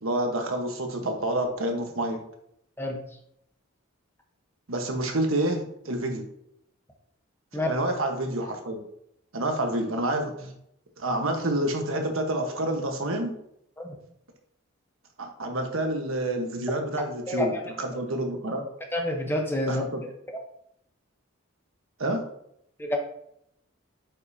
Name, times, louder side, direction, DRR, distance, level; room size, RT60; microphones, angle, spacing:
voice 1, 0.0-2.2 4.7-6.2 7.5-8.8 9.3-10.5 11.0-13.3 15.2-17.5 17.8-18.6 19.7-20.0 22.0-22.2, right 1 dB, 75° right, 4 dB, 1.3 m, -28 dB
voice 2, 18.9-19.8 22.8-23.0, left 1 dB, 10° left, 1 dB, 1.0 m, -28 dB
8.6 x 5.5 x 2.8 m, 0.74 s
head